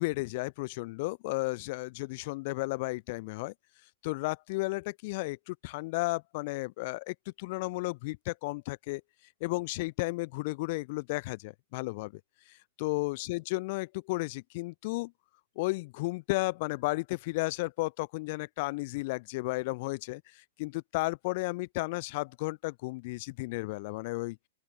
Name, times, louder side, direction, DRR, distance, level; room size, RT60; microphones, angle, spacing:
voice 1, 0.0-3.5 4.0-9.0 9.4-12.1 12.8-15.1 15.6-20.2 20.6-24.4, left 23 dB, 50° left, 0.8 m, -33 dB
open air
hypercardioid pair, 130°, 0 cm